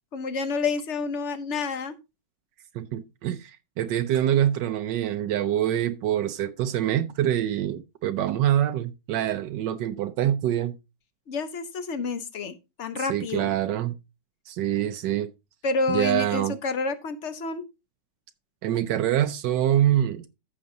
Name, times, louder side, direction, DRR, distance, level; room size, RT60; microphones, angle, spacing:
voice 1, 0.1-1.9 11.3-13.5 15.6-17.6, left 4 dB, 50° left, 1.1 m, -29 dB
voice 2, 2.7-10.8 13.1-13.9 14.5-15.3 15.9-16.6 18.6-20.3, right 11 dB, 85° right, 1.3 m, -25 dB
14.5 x 6.2 x 2.7 m
omnidirectional pair, 1.9 m